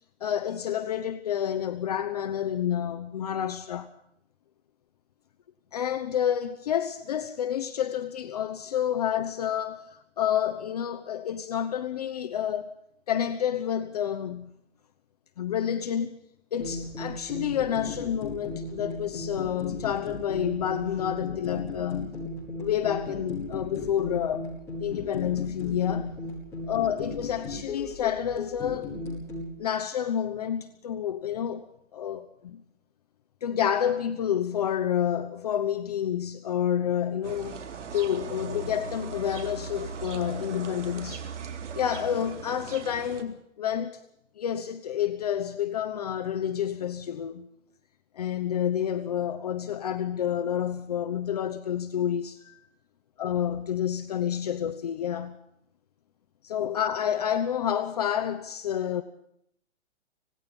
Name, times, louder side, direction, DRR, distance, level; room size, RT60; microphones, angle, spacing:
voice 1, 0.2-3.9 5.7-12.7 13.1-14.5 15.4-16.2 16.5-22.2 22.6-24.5 24.8-26.2 26.7-28.9 29.6-31.6 31.9-32.6 33.4-37.6 37.9-41.2 41.7-44.0 44.4-47.5 48.1-52.6 53.2-55.4 56.4-59.0, left 9 dB, 35° left, 1.0 m, -29 dB
sound 1, 16.6-29.5, left 2 dB, 5° left, 6.7 m, -36 dB
sound 2, 37.2-43.2, right 5 dB, 75° right, 3.8 m, -38 dB
26.0 x 19.0 x 5.5 m
hypercardioid pair, 175°, 36 cm